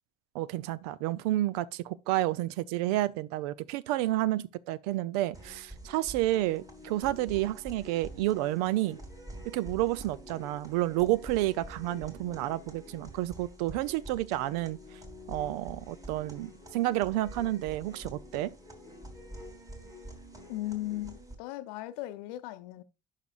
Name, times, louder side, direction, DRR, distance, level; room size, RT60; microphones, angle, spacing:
voice 1, 0.3-9.0 9.5-14.8 15.3-18.5, right 15 dB, 70° right, 0.5 m, -30 dB
sound 1, 5.3-21.3, equal, 15° right, 2.8 m, -47 dB
voice 2, 20.5-22.8, left 16 dB, 70° left, 0.7 m, -37 dB
11.0 x 5.7 x 2.4 m
hypercardioid pair, 55°, 21 cm